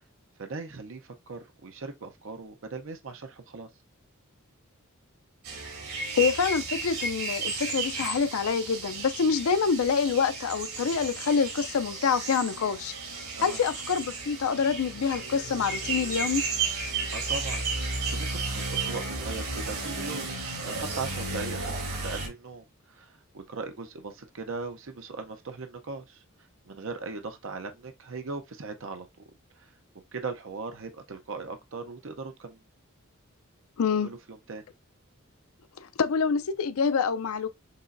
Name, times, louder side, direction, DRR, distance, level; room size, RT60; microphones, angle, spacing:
voice 1, 0.4-3.7 13.3-13.6 17.1-17.9 18.1-20.3 20.6-21.7 22.0-26.2 26.7-29.1 29.6-29.7 30.1-32.6 34.0-34.6, right 4 dB, 60° right, 0.7 m, -39 dB
sound 1, 5.4-22.3, right 3 dB, 90° right, 2.4 m, -33 dB
voice 2, 6.2-12.9 13.4-16.4 33.8-34.1 35.8-37.5, left 6 dB, 75° left, 0.5 m, -26 dB
6.7 x 3.0 x 2.6 m
head